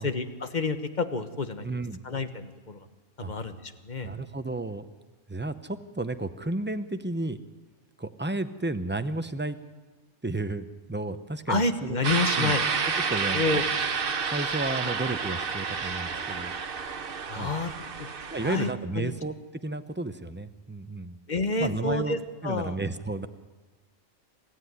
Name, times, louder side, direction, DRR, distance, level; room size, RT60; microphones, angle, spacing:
voice 1, 0.0-1.7 2.0-2.8 3.2-4.2 11.5-12.6 13.3-13.6 17.3-17.7 18.0-18.1 18.4-18.7 18.9-19.2 21.3-22.2 22.4-22.8, left 3 dB, 35° left, 9 dB, 1.4 m, -29 dB
voice 2, 1.6-2.0 3.2-3.3 4.0-4.9 5.3-7.4 8.0-9.6 10.2-12.0 12.4-12.5 13.1-13.4 14.3-16.5 17.3-17.5 18.3-19.3 19.6-21.2 21.6-22.2 22.4-23.3, right 2 dB, 10° right, 10 dB, 0.7 m, -32 dB
sound 1, 12.0-18.7, right 5 dB, 45° right, 1.2 m, -30 dB
27.5 x 14.5 x 9.6 m, 1.3 s
omnidirectional pair, 1.4 m